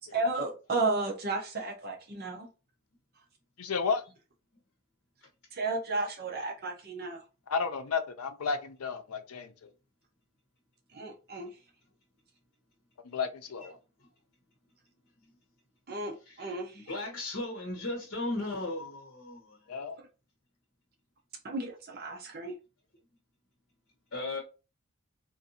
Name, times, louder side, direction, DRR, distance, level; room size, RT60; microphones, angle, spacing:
voice 1, 0.1-2.5 5.5-7.2 10.9-11.5 15.9-16.7 21.4-22.5, right 3 dB, 45° right, 0.7 m, -33 dB
voice 2, 3.6-4.0 7.5-9.7 13.0-13.8 19.7-20.0, left 5 dB, 85° left, 0.5 m, -32 dB
voice 3, 16.2-19.6 24.1-24.4, left 2 dB, 55° left, 1.1 m, -36 dB
3.8 x 2.6 x 2.7 m
head